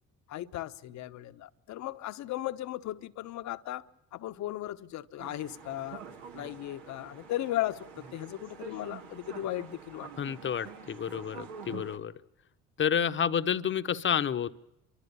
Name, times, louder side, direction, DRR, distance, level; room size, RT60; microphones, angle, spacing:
voice 1, 0.3-3.9 4.1-6.0 6.3-10.1 11.7-11.9, left 14 dB, 65° left, 1.0 m, -36 dB
sound 1, 5.2-12.0, right 6 dB, 90° right, 2.0 m, -47 dB
voice 2, 10.2-12.1 12.8-14.5, left 8 dB, 40° left, 0.9 m, -29 dB
30.0 x 13.0 x 6.8 m
supercardioid pair, 80°, 30 cm